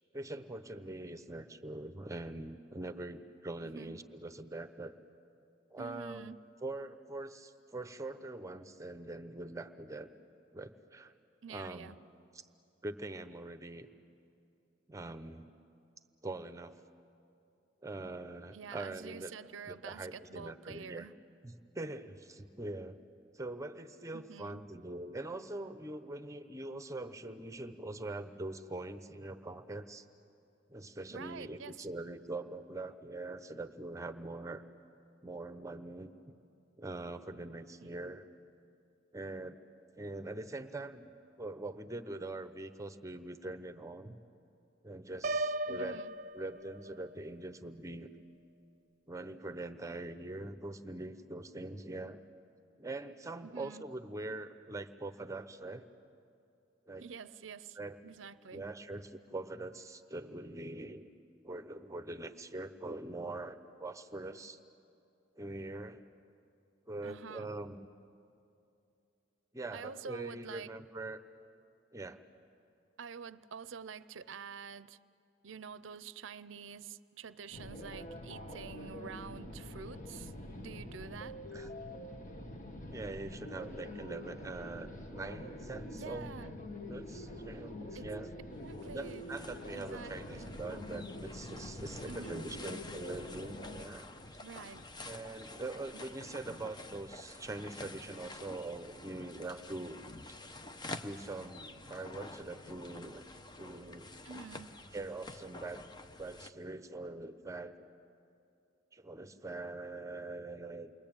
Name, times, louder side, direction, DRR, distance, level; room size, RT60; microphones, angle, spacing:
voice 1, 0.1-4.9 5.7-6.3 6.6-10.1 10.5-11.1 11.5-11.9 12.3-12.5 12.8-13.9 14.9-15.5 16.2-16.8 17.8-19.3 19.7-21.1 21.4-23.0 23.3-30.1 30.7-34.6 35.2-36.1 36.8-38.3 39.1-39.6 40.0-41.1 41.4-44.2 44.8-46.0 46.3-48.1 49.1-52.2 52.8-55.8 56.9-57.0 57.8-58.0 58.5-61.1 61.4-64.6 65.3-66.0 66.9-67.9 69.5-71.2 71.9-72.2 81.5-81.7 82.9-86.4 86.9-88.3 88.9-94.1 95.1-100.0 101.0-103.2 103.6-104.2 104.9-105.9 106.2-107.9 108.9-110.9, right 2 dB, 15° right, 0.9 m, -43 dB
voice 2, 3.6-4.0 5.8-6.4 11.4-12.0 18.5-21.1 24.1-24.6 31.1-31.9 37.8-37.9 45.7-46.1 53.4-53.8 57.0-57.8 58.0-58.7 67.0-67.5 69.7-70.7 73.0-75.0 75.4-81.4 85.9-86.6 87.9-88.1 88.6-89.2 89.7-90.5 92.1-92.4 94.4-94.8 95.9-96.0 104.2-104.7, right 6 dB, 80° right, 0.6 m, -48 dB
Piano, 45.2-47.1, right 1 dB, 45° right, 0.7 m, -36 dB
sound 1, 77.5-93.9, left 1 dB, 40° left, 1.5 m, -45 dB
sound 2, 88.5-106.5, left 2 dB, 20° left, 0.8 m, -49 dB
29.0 x 22.5 x 8.9 m
head